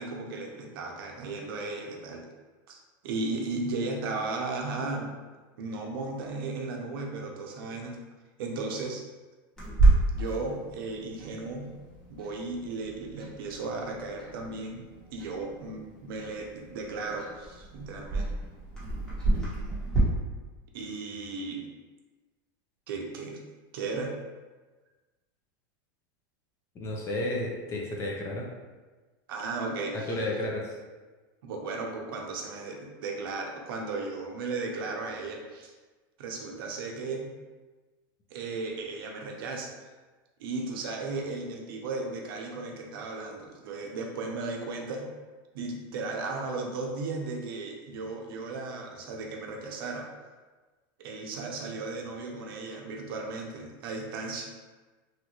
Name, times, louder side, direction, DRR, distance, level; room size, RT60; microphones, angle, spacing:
voice 1, 0.0-2.3 2.7-5.1 5.6-8.0 8.4-9.0 10.1-11.7 12.1-14.8 15.1-18.3 20.7-21.7 22.9-23.4 23.7-24.1 29.3-30.1 31.4-35.7 36.2-37.3 38.3-39.7 40.4-45.1 45.5-50.1 51.0-54.5, right 3 dB, 80° right, 1 dB, 0.6 m, -35 dB
Clock, 9.6-20.0, right 2 dB, 5° left, 1.0 m, -30 dB
voice 2, 26.7-28.5 29.9-30.8, left 1 dB, 25° left, -1 dB, 0.5 m, -32 dB
3.1 x 2.4 x 2.9 m, 1.3 s
supercardioid pair, 155°, 12 cm